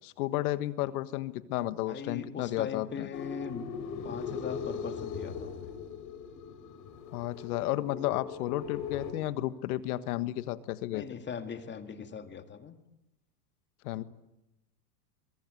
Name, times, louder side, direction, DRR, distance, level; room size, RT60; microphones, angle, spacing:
voice 1, 0.0-3.1 7.1-11.0 13.8-14.0, left 15 dB, 65° left, 14 dB, 1.6 m, -32 dB
voice 2, 1.9-3.7 4.0-5.7 10.9-12.8 14.0-14.1, left 6 dB, 25° left, 8 dB, 2.2 m, -40 dB
sound 1, 3.1-9.1, left 6 dB, 40° left, 4.4 m, -39 dB
23.0 x 23.0 x 9.6 m, 0.93 s
hypercardioid pair, 115°, 47 cm